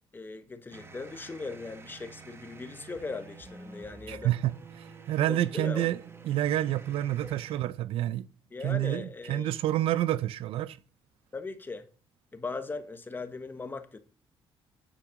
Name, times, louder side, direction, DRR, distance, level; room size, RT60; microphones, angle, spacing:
voice 1, 0.1-4.3 5.3-5.9 7.2-7.3 8.5-9.5 11.3-11.9 12.3-14.0, left 3 dB, 20° left, 1.3 m, -39 dB
sound 1, 0.7-7.6, right 4 dB, 25° right, 1.1 m, -49 dB
voice 2, 4.1-6.0 6.2-8.3 8.6-10.8, right 13 dB, 80° right, 0.5 m, -28 dB
9.0 x 8.2 x 5.1 m
cardioid pair, 120°, 9 cm